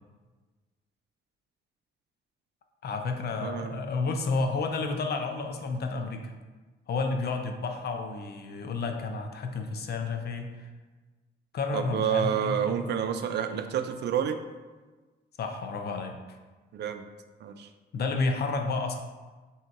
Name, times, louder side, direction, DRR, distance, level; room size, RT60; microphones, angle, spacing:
voice 1, 2.8-6.3 6.9-10.7 11.5-12.8 15.4-16.2 17.9-19.0, left 3 dB, 55° left, 5 dB, 0.6 m, -31 dB
voice 2, 3.4-3.8 11.7-14.4 16.7-17.0 17.4-17.7, right 8 dB, 60° right, 8 dB, 0.4 m, -29 dB
3.7 x 2.8 x 4.5 m, 1.3 s
cardioid pair, 90°, 20 cm